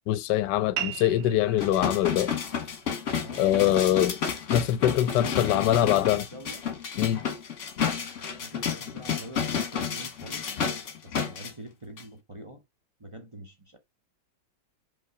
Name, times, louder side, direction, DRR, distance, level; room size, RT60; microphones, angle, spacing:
voice 1, 0.1-2.3 3.4-4.2 4.5-6.2 7.0-7.2, left 12 dB, 75° left, 1.1 m, -23 dB
sound 1, 0.8-5.8, right 11 dB, 85° right, 1.6 m, -41 dB
sound 2, 1.6-11.5 12.0-12.1, left 7 dB, 45° left, 1.3 m, -31 dB
voice 2, 3.2-4.1 5.0-6.6 8.3-10.5 11.0-12.6 13.0-13.8, right 1 dB, 30° right, 0.6 m, -44 dB
5.5 x 3.9 x 4.8 m
omnidirectional pair, 2.0 m